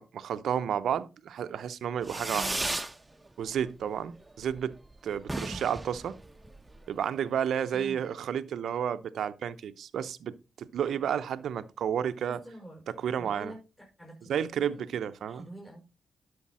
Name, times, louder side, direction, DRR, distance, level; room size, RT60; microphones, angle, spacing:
voice 1, 0.0-2.5 3.4-4.8 5.0-6.2 6.9-12.4 12.9-13.5 14.3-15.5, right 8 dB, 75° right, 0.7 m, -31 dB
Fireworks, 2.0-3.0 3.3-3.9 4.2-4.3 4.5-4.6 4.9-5.0 5.2-6.8, right 2 dB, 20° right, 0.9 m, -35 dB
voice 2, 12.4-12.8 13.2-14.3 14.6-14.9 15.3-15.8, right 1 dB, 15° left, 5.6 m, -46 dB
11.0 x 6.6 x 4.2 m
supercardioid pair, 50°, 0 cm